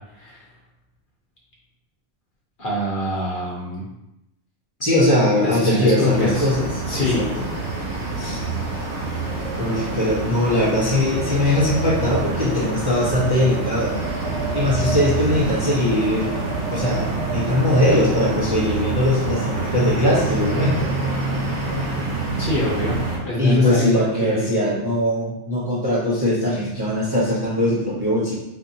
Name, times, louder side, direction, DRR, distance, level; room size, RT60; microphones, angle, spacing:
voice 1, 2.6-3.8 5.4-6.5 6.9-7.2 22.4-24.6, left 1 dB, 50° left, -5 dB, 0.9 m, -25 dB
voice 2, 4.8-6.8 7.1-7.5 8.2-8.4 9.6-13.9 14.5-16.3 16.7-20.9 23.4-28.3, left 1 dB, 25° right, -8 dB, 0.7 m, -20 dB
sound 1, 6.1-23.2, right 3 dB, 85° right, 1.2 m, -27 dB
Wind, 9.1-21.7, right 3 dB, 70° right, 0.8 m, -35 dB
4.1 x 2.5 x 2.7 m, 0.90 s
omnidirectional pair, 1.2 m